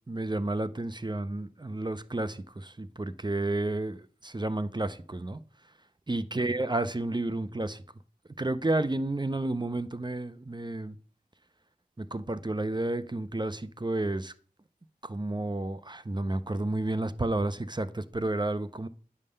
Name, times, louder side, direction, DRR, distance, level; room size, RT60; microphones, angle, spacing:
voice 1, 0.0-5.4 6.1-7.8 8.4-11.0 12.0-14.3 15.0-18.9, right 2 dB, 30° right, 0.5 m, -31 dB
9.6 x 3.7 x 6.7 m
wide cardioid pair, 45°, 16 cm